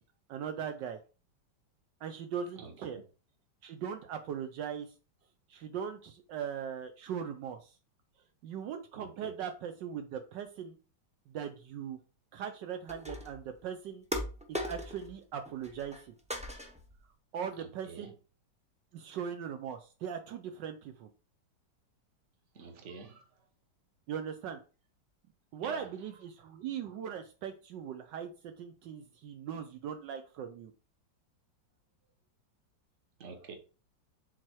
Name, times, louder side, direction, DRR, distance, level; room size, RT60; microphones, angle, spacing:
voice 1, 0.3-1.0 2.0-3.0 3.6-4.9 5.5-7.8 8.4-10.8 11.3-12.0 12.3-14.0 14.7-16.1 17.3-18.1 18.9-21.1 24.1-24.6 25.5-30.7, right 8 dB, 75° right, 1.3 m, -39 dB
voice 2, 2.6-3.0 8.9-9.3 17.6-18.1 22.5-23.3 25.6-25.9 33.2-33.5, right 4 dB, 40° right, 1.4 m, -46 dB
sound 1, 12.9-13.5 14.1-15.2 15.5-16.0 16.3-17.0, left 1 dB, 10° right, 0.4 m, -39 dB
6.5 x 4.1 x 4.5 m
omnidirectional pair, 2.0 m